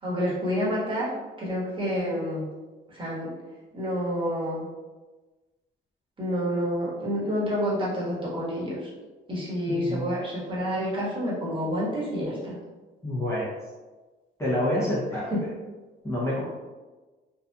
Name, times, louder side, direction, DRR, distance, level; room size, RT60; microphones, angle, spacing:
voice 1, 0.0-1.1 1.4-2.5 2.9-3.3 3.7-4.7 6.2-8.9 9.3-12.6 15.1-15.5, equal, 25° right, -7 dB, 1.2 m, -28 dB
voice 2, 9.7-10.2 13.0-13.5 14.4-15.3 16.0-16.4, left 1 dB, 15° left, -8 dB, 0.7 m, -27 dB
2.7 x 2.4 x 2.2 m, 1.3 s
cardioid pair, 90°, 20 cm